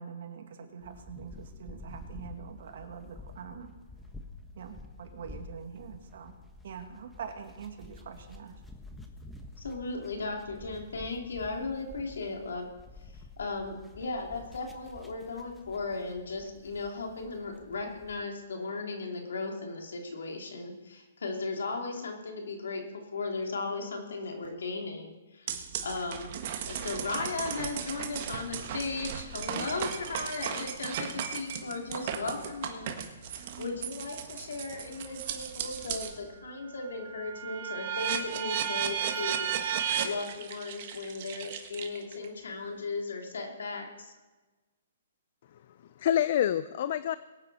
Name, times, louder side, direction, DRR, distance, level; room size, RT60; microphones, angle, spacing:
voice 1, 0.0-3.7 4.6-6.4 6.6-8.6, right 7 dB, 60° right, 4 dB, 2.2 m, -44 dB
sound 1, 0.8-18.2, left 2 dB, 5° left, 1.2 m, -49 dB
voice 2, 9.6-12.7 13.4-26.3 26.7-39.5 40.0-44.1, left 3 dB, 85° left, 2 dB, 2.9 m, -36 dB
sound 2, 25.5-36.2 36.6-42.2, right 8 dB, 45° right, 1.5 m, -35 dB
voice 3, 45.5-47.2, left 10 dB, 50° left, 14 dB, 0.4 m, -28 dB
22.5 x 9.1 x 4.2 m, 1.2 s
hypercardioid pair, 155°, 0 cm